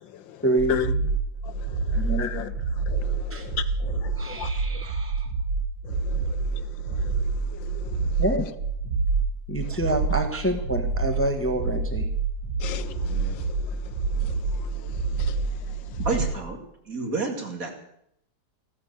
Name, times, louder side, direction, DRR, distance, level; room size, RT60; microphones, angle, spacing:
voice 1, 0.4-1.1 1.9-2.6 3.3-3.5 4.1-5.3 8.2-8.5 9.5-12.1, right 1 dB, 10° left, 6 dB, 1.2 m, -27 dB
sound 1, 0.6-16.4, right 4 dB, 90° right, 2.2 m, -27 dB
voice 2, 2.2-2.5 2.9-4.8 5.9-7.2 7.5-8.0 12.6-13.8 14.2-15.4, left 10 dB, 80° left, 12 dB, 1.6 m, -36 dB
voice 3, 16.0-16.6 16.9-17.7, right 3 dB, 45° right, 2 dB, 2.9 m, -29 dB
15.0 x 13.0 x 6.8 m, 0.74 s
omnidirectional pair, 2.0 m